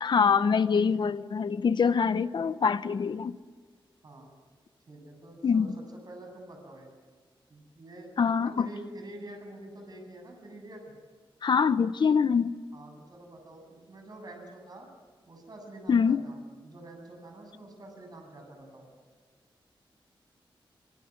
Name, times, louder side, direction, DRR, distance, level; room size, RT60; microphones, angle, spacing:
voice 1, 0.0-3.4 5.4-5.8 8.2-8.7 11.4-12.6 15.9-16.2, left 6 dB, 55° left, 0.9 m, -24 dB
voice 2, 4.9-6.9 7.5-11.0 12.7-14.9 15.3-18.9, right 1 dB, 45° right, 7.9 m, -47 dB
25.0 x 24.5 x 9.6 m
wide cardioid pair, 125°, 9 cm